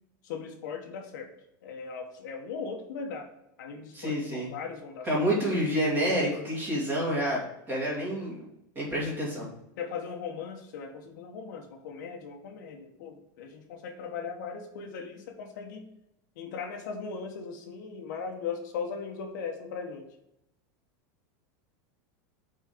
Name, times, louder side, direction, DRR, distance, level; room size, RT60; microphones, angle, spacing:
voice 1, 0.2-1.3 1.6-3.3 3.6-5.1 9.8-15.9 16.4-20.0, left 5 dB, 65° left, 3 dB, 1.2 m, -38 dB
voice 2, 3.9-4.5 5.0-7.4 7.7-8.3 8.7-9.5, equal, 20° right, -5 dB, 2.7 m, -28 dB
5.8 x 4.4 x 5.1 m, 0.82 s
supercardioid pair, 170°, 11 cm